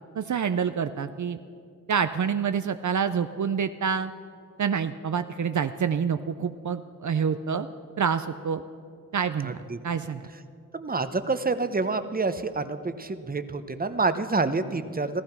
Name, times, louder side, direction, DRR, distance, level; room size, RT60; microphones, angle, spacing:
voice 1, 0.2-1.4 1.9-4.1 4.6-7.7 8.0-8.6 9.1-9.6 9.8-10.2, right 7 dB, 65° right, 10 dB, 0.5 m, -27 dB
voice 2, 9.4-9.8 10.7-15.2, right 3 dB, 25° right, 11 dB, 0.8 m, -28 dB
15.0 x 14.0 x 5.9 m, 2.3 s
wide cardioid pair, 55°, 32 cm